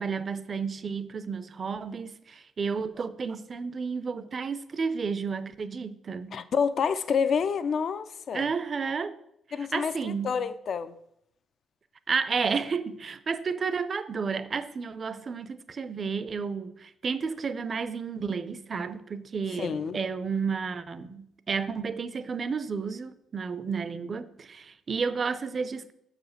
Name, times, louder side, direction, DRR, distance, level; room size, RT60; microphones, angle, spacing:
voice 1, 0.0-6.4 8.3-9.2 9.7-10.4 12.1-25.9, right 5 dB, 35° right, 0.5 m, -32 dB
voice 2, 6.3-8.5 9.5-10.9 19.5-20.0, left 6 dB, 50° left, 0.4 m, -28 dB
6.6 x 4.9 x 6.4 m
cardioid pair, 140°, 0 cm